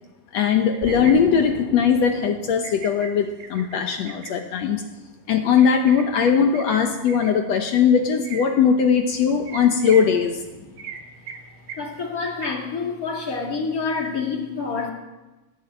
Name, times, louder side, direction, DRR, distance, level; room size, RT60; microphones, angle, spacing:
voice 1, 0.3-4.8 5.3-10.4, left 7 dB, 70° left, 5 dB, 1.7 m, -19 dB
sound 1, 0.7-1.1 2.6-3.1 3.4-4.3 5.6-6.8 7.1-7.3 8.2-8.5 9.5-10.1 10.8-11.0 11.3-11.4 11.7-11.8 12.4-12.5, right 7 dB, 55° right, 2.0 m, -37 dB
Explosion, 0.8-3.5, left 2 dB, 45° left, 0.6 m, -34 dB
voice 2, 11.8-14.9, left 4 dB, 30° left, 0 dB, 2.6 m, -27 dB
19.0 x 7.2 x 9.1 m, 1.1 s
omnidirectional pair, 3.8 m